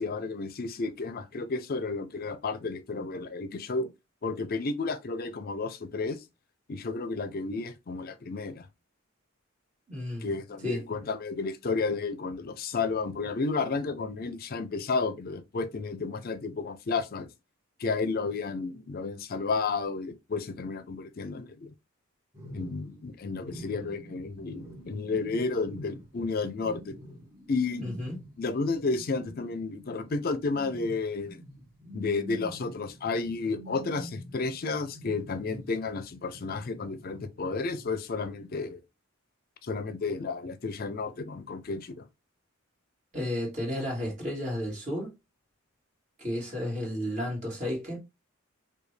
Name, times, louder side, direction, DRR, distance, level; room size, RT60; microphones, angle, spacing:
voice 1, 0.0-3.9 4.2-6.2 6.7-8.7 10.2-17.3 17.8-21.7 22.5-26.9 27.5-27.9 28.4-31.4 31.9-38.8 39.6-42.1, left 4 dB, 45° left, 0.5 m, -32 dB
voice 2, 9.9-10.3 10.6-10.9 27.8-28.2 43.1-45.1 46.2-48.0, left 1 dB, 35° right, 1.7 m, -32 dB
sound 1, 22.3-35.9 36.3-38.2 38.4-38.5, equal, 10° right, 1.2 m, -47 dB
4.9 x 2.3 x 3.2 m
head